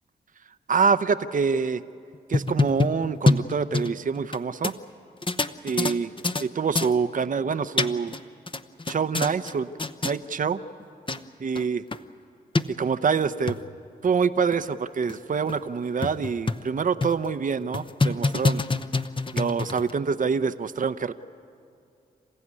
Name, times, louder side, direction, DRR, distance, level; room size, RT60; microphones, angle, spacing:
voice 1, 0.7-1.8 2.3-4.7 5.6-6.1 6.4-8.1 8.9-9.7 10.0-10.6 11.4-11.8 12.8-13.6 14.0-18.6 19.3-21.1, right 5 dB, 50° right, 11 dB, 0.8 m, -25 dB
sound 1, 2.1-4.4 4.6-4.7 5.2-6.4 6.7-6.9 7.5-8.2 8.5-9.5 9.8-10.1 10.8-10.9 11.1-11.2 11.5-11.6 11.9-12.0 12.5-12.6 13.2-13.6 14.1-14.2 14.5-14.6 15.1-15.2 15.5-15.6 16.0-16.7 17.0-17.3 17.7-19.9, left 3 dB, 30° left, 0.9 m, -25 dB
28.0 x 15.0 x 9.7 m, 2.5 s
supercardioid pair, 50°, 18 cm